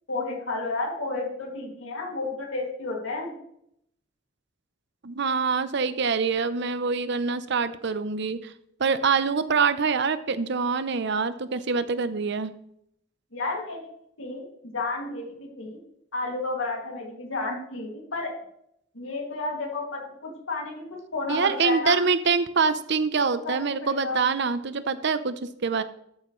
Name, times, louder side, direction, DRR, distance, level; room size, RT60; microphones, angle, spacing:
voice 1, 0.1-3.3 13.3-13.9 14.2-14.5 14.7-15.8 16.1-18.3 18.9-22.0 23.2-24.2, left 3 dB, 85° left, -1 dB, 2.4 m, -31 dB
voice 2, 5.0-8.5 8.8-12.5 21.3-25.8, right 5 dB, 65° right, 12 dB, 0.7 m, -25 dB
13.0 x 8.4 x 3.2 m, 0.73 s
head